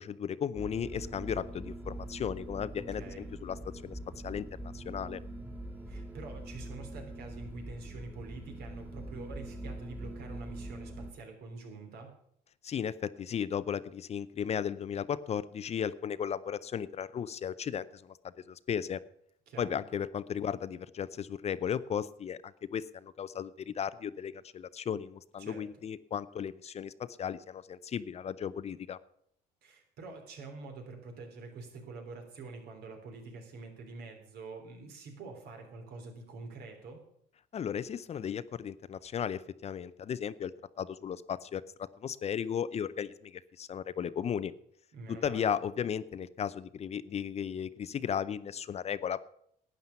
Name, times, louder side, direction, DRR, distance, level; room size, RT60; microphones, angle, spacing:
voice 1, 0.0-3.6 3.8-4.5 4.7-5.2 12.6-18.1 18.5-19.0 19.6-29.0 37.5-40.5 40.8-44.5 45.1-49.2, left 8 dB, 40° left, 16 dB, 0.6 m, -35 dB
sound 1, 0.5-11.1, right 1 dB, 10° right, 1.8 m, -43 dB
voice 2, 2.9-3.3 5.9-12.1 19.5-19.8 25.4-25.7 29.6-37.0 44.9-45.5, right 3 dB, 70° right, 4 dB, 3.5 m, -46 dB
11.5 x 9.3 x 7.0 m, 0.69 s
cardioid pair, 110°, 17 cm